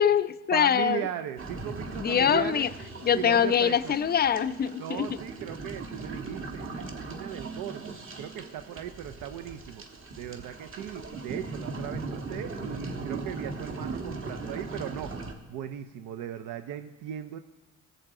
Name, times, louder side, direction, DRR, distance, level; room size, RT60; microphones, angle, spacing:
voice 1, 0.0-1.0 2.0-2.7 3.0-5.1, left 8 dB, 30° left, 15 dB, 0.4 m, -24 dB
voice 2, 0.5-2.7 3.1-4.0 4.8-17.4, right 10 dB, 75° right, 9 dB, 0.6 m, -38 dB
sound 1, 1.4-15.3, right 3 dB, 40° right, 1.8 m, -39 dB
18.0 x 7.8 x 3.7 m, 1.2 s
cardioid pair, 90°, 32 cm